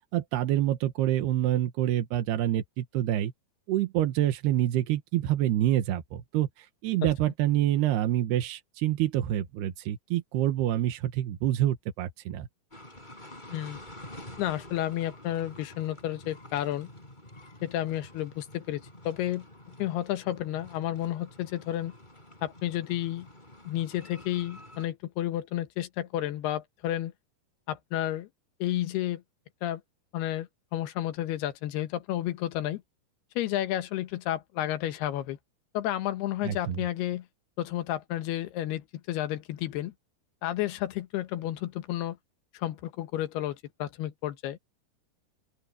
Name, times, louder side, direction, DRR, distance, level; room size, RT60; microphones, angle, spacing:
voice 1, 0.1-3.3 3.7-12.5 36.4-36.8, right 13 dB, 85° right, 3.4 m, -27 dB
sound 1, 12.7-24.9, left 1 dB, 10° left, 4.8 m, -49 dB
voice 2, 14.4-16.9 17.6-19.5 19.8-21.9 22.4-23.3 23.7-27.1 27.7-28.3 28.6-29.2 29.6-29.8 30.1-32.8 33.4-35.4 35.7-37.3 37.6-39.9 40.4-42.2 42.5-44.6, left 13 dB, 85° left, 3.2 m, -31 dB
open air
omnidirectional pair, 4.5 m